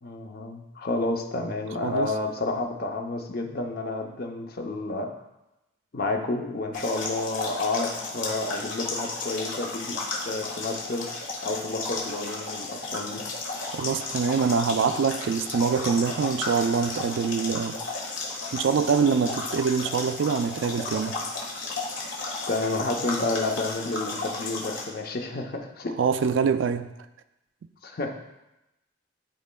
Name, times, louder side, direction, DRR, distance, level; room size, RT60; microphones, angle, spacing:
voice 1, 0.0-5.1 5.9-10.0 10.2-13.2 22.5-26.0 27.8-28.2, left 2 dB, 50° left, 4 dB, 0.7 m, -30 dB
voice 2, 1.8-2.1 13.6-17.8 18.5-21.2 26.0-26.9, right 6 dB, 70° right, 11 dB, 0.3 m, -24 dB
sound 1, 6.7-24.8, left 3 dB, 80° left, 1.4 m, -33 dB
11.5 x 4.1 x 2.2 m, 0.95 s
head